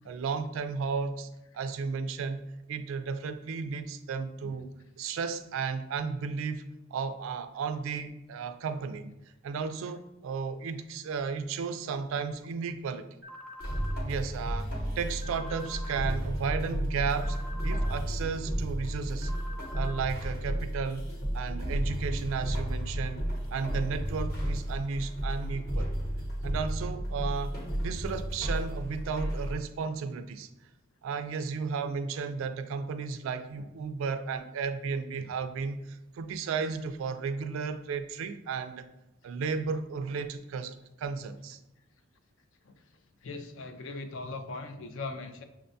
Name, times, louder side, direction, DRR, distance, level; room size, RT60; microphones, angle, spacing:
voice 1, 0.1-1.3 1.5-2.4 2.7-6.7 6.9-9.1 9.4-13.1 14.0-14.7 15.0-17.4 17.6-19.3 19.7-21.0 21.3-25.9 26.4-30.5 31.0-38.9 39.2-41.6, right 5 dB, 75° right, 10 dB, 0.3 m, -34 dB
sound 1, 13.2-14.0 15.2-16.0 17.2-18.0 19.2-20.0, left 2 dB, 5° right, 0.5 m, -45 dB
sound 2, 13.6-29.5, equal, 50° left, 0.9 m, -33 dB
voice 2, 43.2-45.4, left 3 dB, 65° left, 7 dB, 0.4 m, -40 dB
6.1 x 2.2 x 2.6 m, 0.92 s
head